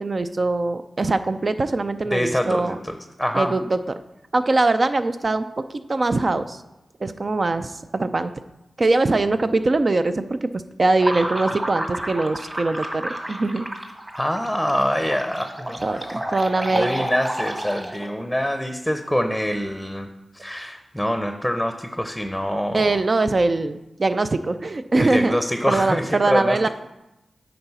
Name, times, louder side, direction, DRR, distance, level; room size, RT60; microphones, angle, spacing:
voice 1, 0.0-2.8 3.3-3.8 4.3-6.6 7.0-8.3 8.8-13.7 15.8-17.1 22.7-25.4 25.7-26.7, right 2 dB, 50° right, 10 dB, 0.5 m, -22 dB
voice 2, 2.1-3.5 14.1-16.2 16.7-20.1 20.3-23.0 25.0-26.7, equal, ahead, 7 dB, 0.7 m, -25 dB
sound 1, 11.0-18.2, right 1 dB, 25° right, 1.5 m, -30 dB
8.6 x 4.0 x 5.6 m, 0.94 s
cardioid pair, 40°, 0 cm